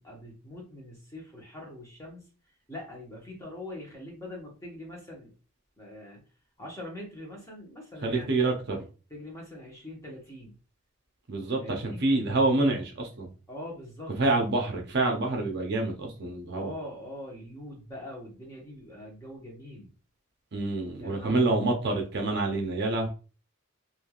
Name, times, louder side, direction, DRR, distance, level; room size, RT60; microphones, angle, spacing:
voice 1, 0.0-5.3 5.8-6.2 6.6-8.3 9.1-10.6 11.6-12.0 13.5-14.4 16.5-19.9 21.0-21.4, left 1 dB, 15° left, -2 dB, 0.9 m, -43 dB
voice 2, 8.0-8.9 11.3-13.3 14.2-16.7 20.5-23.1, right 2 dB, 50° right, 2 dB, 0.6 m, -27 dB
3.1 x 2.5 x 2.3 m, 0.35 s
head